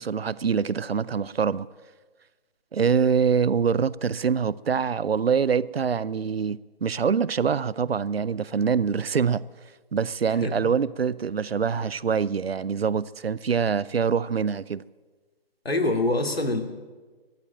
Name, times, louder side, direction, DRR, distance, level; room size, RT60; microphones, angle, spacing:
voice 1, 0.0-1.7 2.7-9.5 9.9-14.8, right 6 dB, 80° right, 0.6 m, -24 dB
voice 2, 15.6-16.6, left 2 dB, 80° left, 2.5 m, -24 dB
13.0 x 11.5 x 8.9 m
figure-of-eight pair, 140°, 30 cm